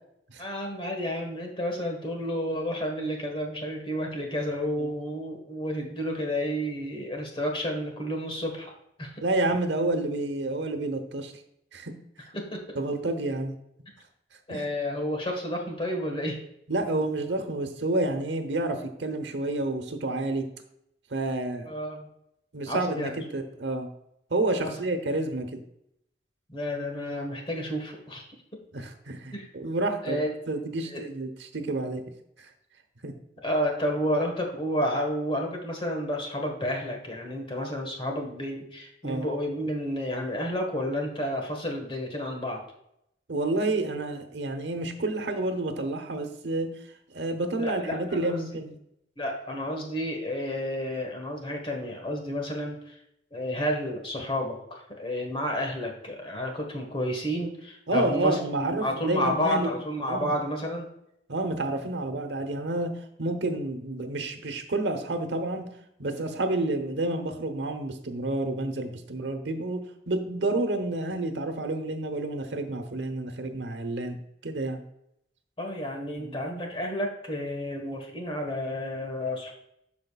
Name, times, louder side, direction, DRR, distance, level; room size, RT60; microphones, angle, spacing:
voice 1, 0.4-8.7 9.0-9.1 12.3-12.8 14.5-16.4 21.6-22.1 22.7-23.2 24.6-24.7 26.5-28.2 29.3-29.5 30.0-30.3 30.8-31.0 33.4-42.6 47.6-48.4 49.2-53.0 53.3-60.9 75.6-79.5, equal, 30° left, 2 dB, 1.5 m, -31 dB
voice 2, 9.2-11.3 11.7-11.9 12.7-13.6 14.5-14.6 16.7-20.5 21.1-21.7 22.5-23.9 24.3-25.6 28.7-30.2 30.5-32.0 32.4-32.5 33.0-33.1 39.0-39.3 43.3-46.7 47.1-48.8 57.9-59.7 60.1-60.3 61.3-65.7 66.0-74.8 76.2-76.4, right 2 dB, 90° right, 7 dB, 1.0 m, -29 dB
12.0 x 5.2 x 2.4 m, 0.78 s
head